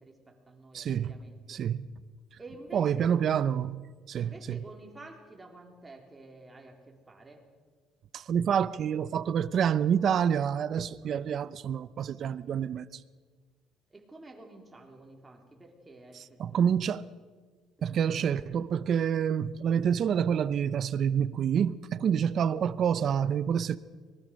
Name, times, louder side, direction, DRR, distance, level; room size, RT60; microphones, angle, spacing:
voice 1, 0.0-1.4 2.4-3.6 4.1-7.4 13.9-17.0 17.9-18.7, right 2 dB, 15° right, 3.6 m, -50 dB
voice 2, 0.7-1.1 1.5-1.9 2.7-3.8 4.1-4.6 8.1-12.9 16.4-17.0 17.8-23.8, right 8 dB, 45° right, 0.7 m, -27 dB
24.0 x 20.0 x 6.4 m
cardioid pair, 140°, 0 cm